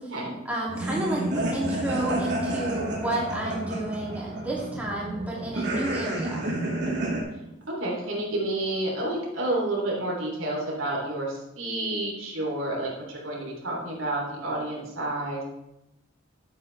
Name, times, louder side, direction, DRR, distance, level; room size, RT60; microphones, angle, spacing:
voice 1, 0.4-6.5, right 1 dB, 10° right, -5 dB, 2.7 m, -31 dB
sound 1, 0.7-7.2, right 1 dB, 55° right, 2.3 m, -30 dB
voice 2, 7.7-15.4, right 1 dB, 90° right, -2 dB, 3.3 m, -30 dB
11.5 x 8.9 x 3.4 m, 0.91 s
head